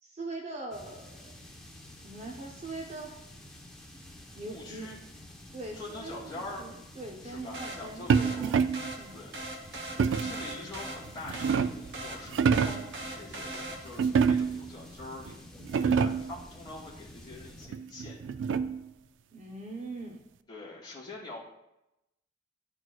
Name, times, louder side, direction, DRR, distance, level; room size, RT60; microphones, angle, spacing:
voice 1, 0.0-1.4 2.0-3.2 4.3-4.9 5.5-8.4 8.9-9.2 19.3-20.2, right 2 dB, 35° right, 1 dB, 0.6 m, -42 dB
sound 1, 0.7-17.7, left 1 dB, 5° left, 0.8 m, -50 dB
voice 2, 4.4-5.0 5.7-6.6 7.2-8.5 9.1-9.4 10.2-12.4 12.7-18.2 20.5-21.4, left 2 dB, 25° left, -6 dB, 2.2 m, -44 dB
sound 2, 7.5-14.1, right 1 dB, 60° right, 1.0 m, -41 dB
sound 3, 8.1-8.9 10.0-10.4 11.1-11.9 12.3-12.9 14.0-14.7 15.3-15.4 15.6-16.3 17.7-18.9, right 6 dB, 80° right, 0.3 m, -26 dB
10.5 x 4.5 x 2.3 m, 0.89 s
head